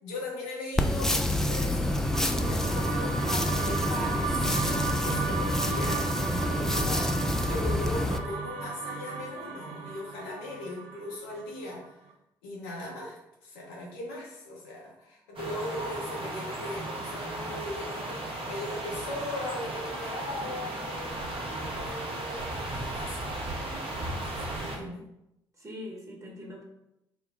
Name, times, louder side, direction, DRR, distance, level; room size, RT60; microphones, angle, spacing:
voice 1, 0.0-12.0 12.4-21.1 21.5-25.1, left 2 dB, 75° left, -4 dB, 1.1 m, -39 dB
sound 1, 0.8-8.2, left 1 dB, 5° left, 0.4 m, -28 dB
sound 2, 1.5-11.8, right 5 dB, 65° right, 0.5 m, -35 dB
sound 3, 15.4-24.8, right 1 dB, 45° right, 1.0 m, -35 dB
voice 2, 20.4-20.8 24.6-25.0 25.6-26.6, left 1 dB, 25° right, -1 dB, 1.3 m, -43 dB
4.3 x 2.2 x 3.5 m, 0.86 s
figure-of-eight pair, 45°, 12 cm